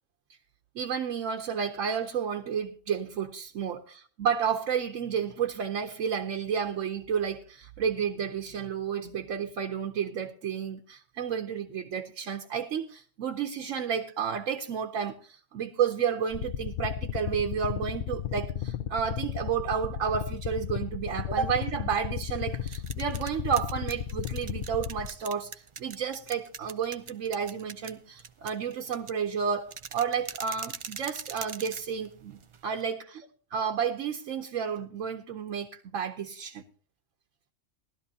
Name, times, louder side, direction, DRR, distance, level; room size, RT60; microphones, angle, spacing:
voice 1, 0.7-33.2 33.5-36.6, right 7 dB, 85° right, 1.2 m, -31 dB
sound 1, 16.3-25.1, left 9 dB, 50° left, 0.8 m, -34 dB
sound 2, 22.4-32.8, right 6 dB, 45° right, 0.4 m, -43 dB
18.5 x 12.5 x 2.7 m
omnidirectional pair, 1.3 m